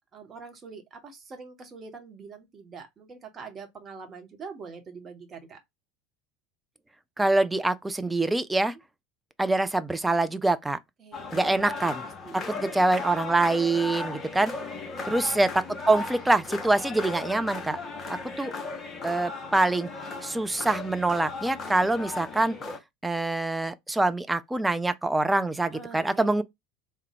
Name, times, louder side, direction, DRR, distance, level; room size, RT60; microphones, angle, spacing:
voice 1, 0.1-5.6 11.0-11.5 12.2-12.4 14.7-14.9 25.7-26.3, right 5 dB, 30° right, 1.0 m, -44 dB
voice 2, 7.2-8.7 9.4-10.8 11.3-12.0 12.5-14.5 15.1-17.8 18.1-18.5 19.0-19.9 20.2-22.6 23.0-26.4, right 2 dB, 10° right, 0.4 m, -25 dB
sound 1, 11.1-22.8, left 3 dB, 25° left, 0.8 m, -37 dB
3.5 x 2.2 x 3.3 m
figure-of-eight pair, 70°, 0 cm